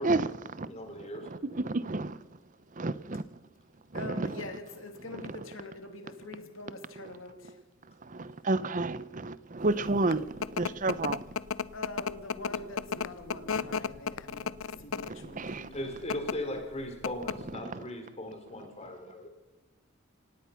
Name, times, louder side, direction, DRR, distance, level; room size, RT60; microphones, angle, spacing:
voice 1, 0.0-0.7 1.0-2.2 2.8-3.2 3.9-4.4 7.0-7.1 8.0-11.2 13.3-13.4 14.4-14.5 14.9-15.7 17.5-17.8, right 2 dB, 40° right, 0.8 m, -31 dB
voice 2, 0.7-1.3 15.7-19.3, left 1 dB, 30° left, 3.8 m, -38 dB
voice 3, 3.9-7.6 11.7-15.8, left 2 dB, 75° left, 2.9 m, -44 dB
sound 1, 9.8-15.2 16.0-16.4 16.7-16.8 17.0-17.5, left 6 dB, 90° left, 0.7 m, -33 dB
26.5 x 18.0 x 5.8 m
head